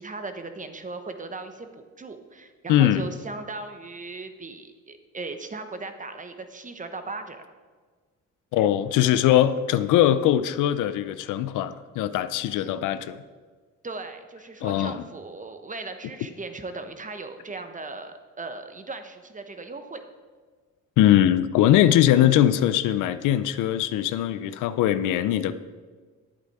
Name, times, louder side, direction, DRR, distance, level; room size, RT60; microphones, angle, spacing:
voice 1, 0.0-7.4 13.8-20.0, right 3 dB, 25° right, 8 dB, 1.0 m, -38 dB
voice 2, 2.7-3.1 8.5-13.2 14.6-15.0 21.0-25.6, left 12 dB, 90° left, 13 dB, 0.6 m, -21 dB
10.5 x 8.3 x 4.8 m, 1.5 s
cardioid pair, 90°, 30 cm